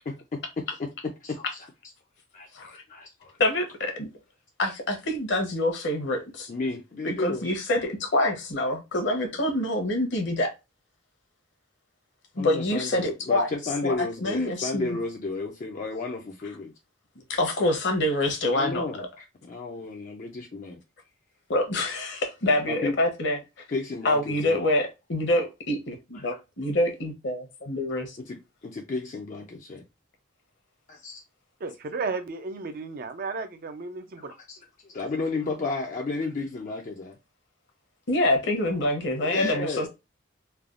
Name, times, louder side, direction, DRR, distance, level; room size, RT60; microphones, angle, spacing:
voice 1, 0.3-1.7 2.3-3.4 6.5-7.5 12.4-16.8 18.5-20.8 22.7-23.0 23.7-24.6 26.1-26.4 28.2-29.9 30.9-31.2 34.2-37.1 39.2-39.9, left 3 dB, 40° left, 0.4 m, -33 dB
voice 2, 3.4-4.1 4.6-6.5 7.0-10.5 12.3-13.5 13.8-14.9 17.3-18.8 21.5-23.4 24.0-28.2 38.1-39.9, left 1 dB, 60° left, 0.8 m, -26 dB
voice 3, 31.6-34.3, right 4 dB, 45° right, 0.4 m, -33 dB
3.2 x 2.2 x 2.3 m
head